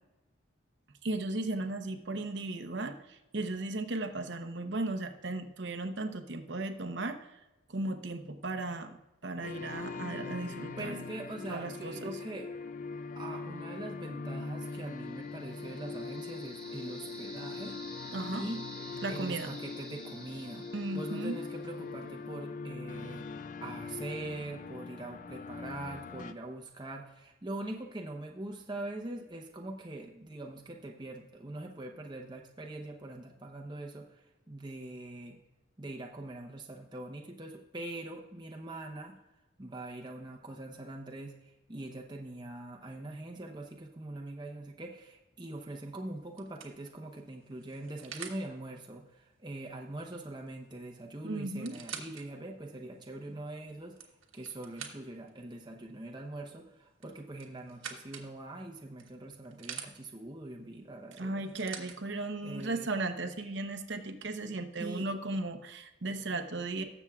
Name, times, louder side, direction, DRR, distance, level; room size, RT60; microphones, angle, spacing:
voice 1, 1.0-7.2 7.7-11.0 11.5-12.2 18.1-18.4 19.0-19.5 20.7-21.4 51.2-51.8 61.2-66.8, right 2 dB, 60° right, 6 dB, 0.8 m, -36 dB
sound 1, 9.4-26.3, left 4 dB, 40° left, 0.4 m, -42 dB
voice 2, 10.8-12.5 13.1-17.8 18.3-18.6 19.1-20.7 20.9-23.3 23.6-35.4 35.8-39.2 39.6-54.0 54.3-61.4 62.4-62.9 64.8-65.1, right 2 dB, 20° right, 1 dB, 0.8 m, -43 dB
sound 2, 14.9-21.9, right 1 dB, 5° left, 1.8 m, -50 dB
sound 3, 45.5-45.8 46.4-48.4 50.5-50.6 50.8-50.9 51.4-52.2 52.8-52.9 53.7-55.3 57.0-58.3 59.0-59.9 61.1-62.0 62.9-63.0, right 7 dB, 85° right, 1.3 m, -46 dB
19.0 x 7.1 x 2.4 m, 0.99 s
head